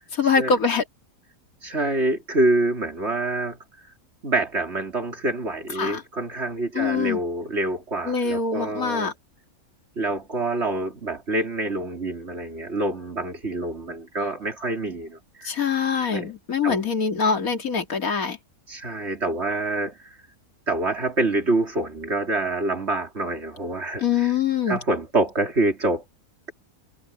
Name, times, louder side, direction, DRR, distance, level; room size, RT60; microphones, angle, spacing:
voice 1, 0.1-0.8 5.8-6.0 6.7-7.2 8.0-9.1 15.4-18.4 24.0-24.8, left 6 dB, 75° left, 2.7 m, -24 dB
voice 2, 1.6-3.6 4.2-9.1 10.0-15.5 16.1-16.3 16.6-16.8 18.7-20.0 20.7-24.3 24.7-26.0, right 2 dB, 45° right, 3.6 m, -26 dB
omnidirectional pair, 1.5 m